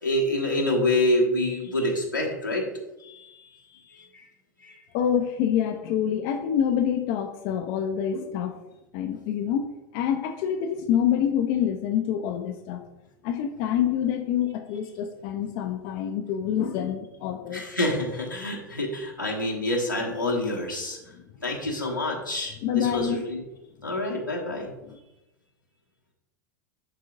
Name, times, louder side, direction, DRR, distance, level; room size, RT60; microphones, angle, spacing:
voice 1, 0.0-2.7 3.0-3.3 3.9-4.2 4.6-4.8 17.5-21.0 21.4-23.4 23.8-24.7, left 1 dB, 90° left, -2 dB, 1.3 m, -27 dB
voice 2, 4.9-8.6 8.9-12.8 13.2-17.6 22.6-23.2 24.9-25.0, left 9 dB, 45° left, 5 dB, 0.5 m, -26 dB
10.5 x 3.7 x 2.6 m, 0.98 s
figure-of-eight pair, 85°, 10 cm